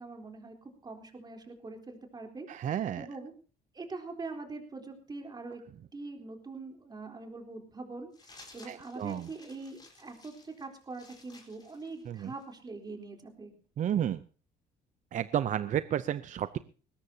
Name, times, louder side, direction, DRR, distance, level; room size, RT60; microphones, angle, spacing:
voice 1, 0.0-3.3 3.7-5.6 5.9-13.5, right 3 dB, 25° right, 3 dB, 3.8 m, -43 dB
voice 2, 2.5-3.1 8.7-9.3 12.1-12.3 13.8-14.2 15.1-16.6, right 10 dB, 50° right, 13 dB, 0.6 m, -31 dB
sound 1, 8.1-12.6, left 3 dB, 25° left, 4.3 m, -56 dB
21.0 x 17.5 x 2.9 m, 0.38 s
cardioid pair, 110°, 17 cm